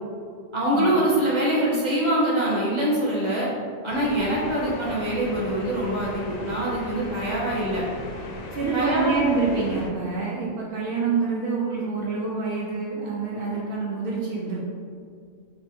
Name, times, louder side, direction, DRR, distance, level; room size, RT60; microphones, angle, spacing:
voice 1, 0.5-3.5 3.8-7.8 8.7-9.2, right 1 dB, 25° right, -6 dB, 0.8 m, -24 dB
sound 1, 3.9-9.9, left 2 dB, 65° left, 0.5 m, -38 dB
voice 2, 8.5-14.6, right 4 dB, 70° right, -5 dB, 0.5 m, -27 dB
4.2 x 2.3 x 4.2 m, 2.2 s
omnidirectional pair, 1.5 m